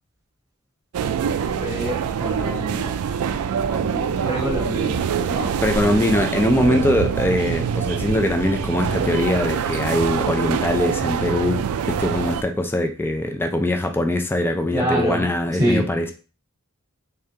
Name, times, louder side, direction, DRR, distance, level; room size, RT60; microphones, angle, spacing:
sound 1, 0.9-12.4, right 7 dB, 75° right, 0.3 m, -25 dB
voice 1, 1.6-3.0 3.7-5.5 14.7-15.3 15.5-15.8, right 1 dB, 15° right, -3 dB, 1.3 m, -26 dB
voice 2, 5.6-11.6 11.9-16.1, left 1 dB, 10° left, 5 dB, 0.4 m, -22 dB
3.6 x 3.4 x 2.8 m, 0.35 s
head